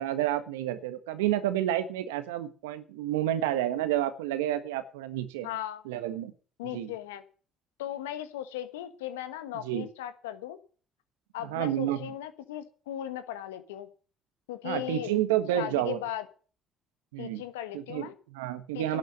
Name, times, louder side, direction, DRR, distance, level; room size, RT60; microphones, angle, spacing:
voice 1, 0.0-5.5 5.8-6.3 6.7-6.9 9.6-9.9 11.4-12.0 14.6-16.0 17.1-17.4 17.7-19.0, right 12 dB, 90° right, 12 dB, 1.4 m, -30 dB
voice 2, 5.4-5.8 6.6-7.2 7.8-10.6 11.3-13.9 14.5-15.2 15.5-16.2 17.2-18.1 18.7-19.0, left 12 dB, 90° left, 12 dB, 1.3 m, -37 dB
11.0 x 9.3 x 8.0 m, 0.40 s
hypercardioid pair, 60°, 0 cm